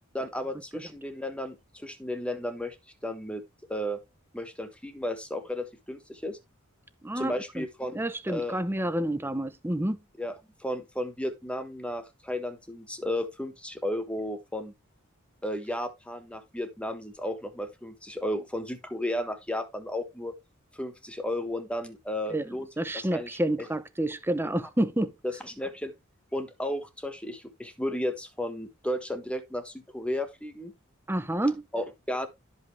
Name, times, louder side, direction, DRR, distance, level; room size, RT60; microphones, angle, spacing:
voice 1, 0.1-2.8 3.0-3.4 3.7-4.0 4.3-6.4 7.1-8.6 10.2-14.7 15.4-20.3 20.8-22.7 22.9-23.3 23.6-23.7 25.2-25.9 26.3-30.7 31.7-32.3, left 1 dB, 5° left, 1.3 m, -33 dB
voice 2, 7.0-7.6 7.9-10.0 22.3-22.4 22.8-25.1 31.1-31.6, right 1 dB, 10° right, 0.7 m, -29 dB
12.0 x 5.5 x 3.3 m
head